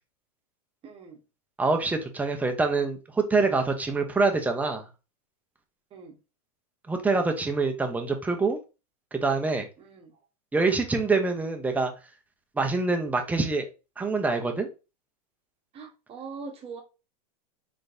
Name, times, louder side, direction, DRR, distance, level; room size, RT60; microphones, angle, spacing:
voice 1, 0.8-1.2 5.9-6.2 9.8-10.2 15.7-16.8, right 4 dB, 30° right, 1.0 m, -42 dB
voice 2, 1.6-4.9 6.9-8.6 9.1-9.7 10.5-11.9 12.6-13.7 14.0-14.7, right 3 dB, 10° right, 0.6 m, -25 dB
3.8 x 3.5 x 2.5 m
supercardioid pair, 125°, 20 cm